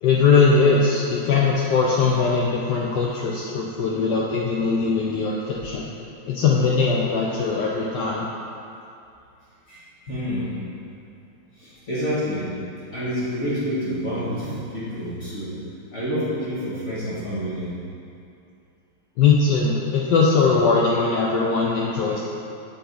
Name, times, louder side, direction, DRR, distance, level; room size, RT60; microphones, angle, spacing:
voice 1, 0.0-5.9 6.3-8.2 19.2-22.2, left 4 dB, 80° left, -3 dB, 1.0 m, -20 dB
voice 2, 9.7-10.5 11.6-12.5 12.9-15.5 15.9-17.7, equal, 40° left, -10 dB, 1.4 m, -28 dB
6.9 x 5.2 x 3.8 m, 2.6 s
omnidirectional pair, 2.4 m